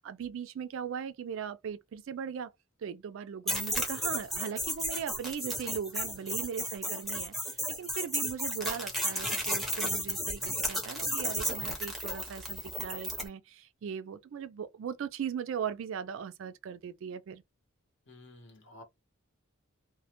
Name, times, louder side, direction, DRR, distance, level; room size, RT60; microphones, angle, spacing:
voice 1, 0.0-2.5 2.8-17.4, right 7 dB, 60° right, 0.3 m, -39 dB
sound 1, 3.5-13.3, equal, ahead, 0.6 m, -33 dB
voice 2, 6.1-6.4 18.1-18.8, left 1 dB, 55° left, 0.8 m, -53 dB
2.1 x 2.1 x 2.8 m
head